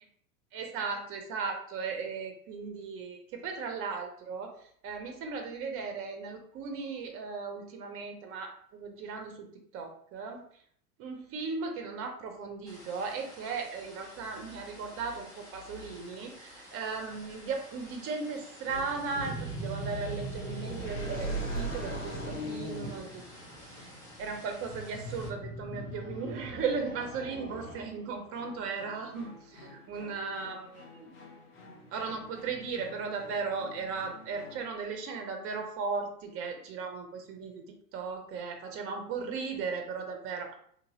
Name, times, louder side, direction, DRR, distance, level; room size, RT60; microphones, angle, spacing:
voice 1, 0.5-9.5 9.7-10.6 11.0-23.2 23.6-23.9 24.2-31.2 31.9-40.6, right 5 dB, 30° right, 4 dB, 0.7 m, -37 dB
sound 1, 12.7-25.3, equal, 5° left, 1.2 m, -52 dB
sound 2, 18.7-28.2, right 1 dB, 80° left, 1.3 m, -39 dB
sound 3, 28.3-34.7, left 3 dB, 25° left, 0.7 m, -52 dB
2.8 x 2.7 x 2.8 m, 0.62 s
figure-of-eight pair, 90°, 47 cm